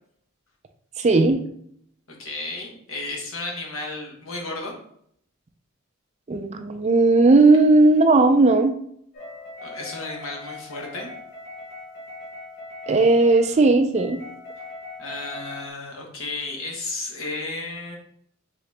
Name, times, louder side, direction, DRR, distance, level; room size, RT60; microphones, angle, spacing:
voice 1, 1.0-1.4 6.3-8.7 12.9-14.2, right 3 dB, 30° right, 7 dB, 0.4 m, -16 dB
voice 2, 2.1-4.7 9.6-11.1 15.0-18.0, left 2 dB, 75° left, 0 dB, 1.1 m, -33 dB
sound 1, 9.1-15.7, left 2 dB, 45° left, 1.3 m, -40 dB
3.8 x 3.8 x 3.3 m, 0.68 s
head